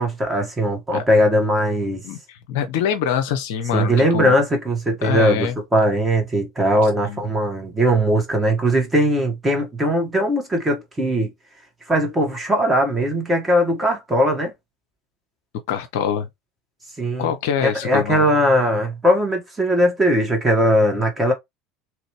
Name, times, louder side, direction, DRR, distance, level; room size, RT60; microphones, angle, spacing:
voice 1, 0.0-2.0 3.7-11.3 11.9-14.5 17.0-17.3 17.6-21.3, equal, 15° right, 1.5 m, -19 dB
voice 2, 2.0-4.4 5.0-5.5 7.0-7.2 15.7-16.3 17.2-18.3, left 8 dB, 65° left, 0.6 m, -24 dB
3.0 x 2.5 x 3.0 m
figure-of-eight pair, 70°, 0 cm